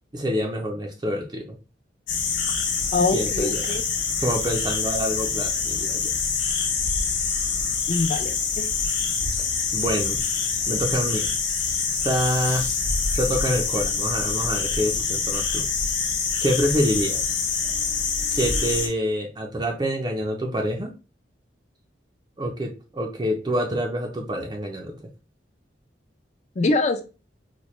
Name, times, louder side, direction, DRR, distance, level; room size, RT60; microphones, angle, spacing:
voice 1, 0.1-1.4 3.1-3.6 4.2-6.1 9.7-10.2 10.7-11.3 12.0-12.6 13.1-15.7 16.4-17.4 18.3-20.9 22.4-25.0, equal, 25° right, 1 dB, 0.4 m, -26 dB
sound 1, 2.1-18.9, left 5 dB, 90° left, 0.9 m, -25 dB
voice 2, 2.9-3.8 7.9-8.7 26.6-27.0, left 3 dB, 40° left, 7 dB, 0.4 m, -24 dB
4.1 x 2.2 x 3.1 m, 0.32 s
head